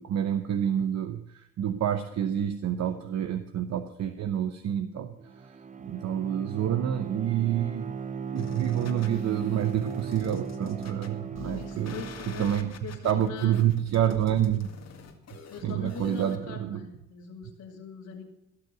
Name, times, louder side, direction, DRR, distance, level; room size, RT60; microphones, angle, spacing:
voice 1, 0.0-5.1 5.8-7.9 8.3-12.7 13.0-14.7 15.6-16.9, right 10 dB, 60° right, 8 dB, 0.9 m, -28 dB
Bowed string instrument, 5.2-12.9, right 6 dB, 25° right, 0.7 m, -38 dB
sound 1, 8.4-16.4, left 6 dB, 60° left, 1.9 m, -46 dB
voice 2, 11.4-13.6 15.5-18.2, left 6 dB, 75° left, -2 dB, 2.8 m, -41 dB
17.0 x 6.8 x 7.9 m, 0.81 s
cardioid pair, 90°, 30 cm